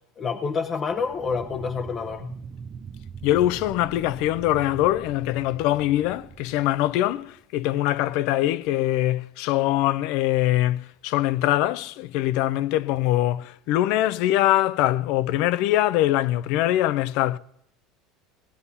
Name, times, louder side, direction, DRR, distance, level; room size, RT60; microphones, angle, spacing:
voice 1, 0.2-2.3, left 5 dB, 25° left, 0.7 m, -28 dB
sound 1, 0.9-7.4, right 6 dB, 25° right, 0.6 m, -42 dB
voice 2, 3.2-17.4, left 14 dB, 60° left, 0.5 m, -23 dB
18.0 x 9.6 x 5.6 m
cardioid pair, 155°, 0 cm